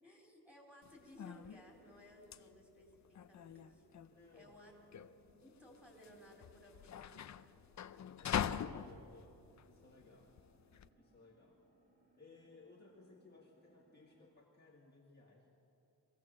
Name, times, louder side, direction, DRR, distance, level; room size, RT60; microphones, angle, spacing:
voice 1, 0.0-3.9 4.3-4.7 5.1-7.4, equal, 5° right, -1 dB, 4.0 m, -60 dB
sound 1, 0.8-10.9, left 9 dB, 40° left, 0.6 m, -44 dB
sound 2, 3.5-14.4, right 2 dB, 20° right, 3.0 m, -73 dB
voice 2, 4.1-4.8 8.2-10.3 10.9-11.6 12.1-15.6, left 3 dB, 25° left, -4 dB, 2.0 m, -61 dB
24.0 x 16.5 x 7.5 m, 2.8 s
wide cardioid pair, 150°, 42 cm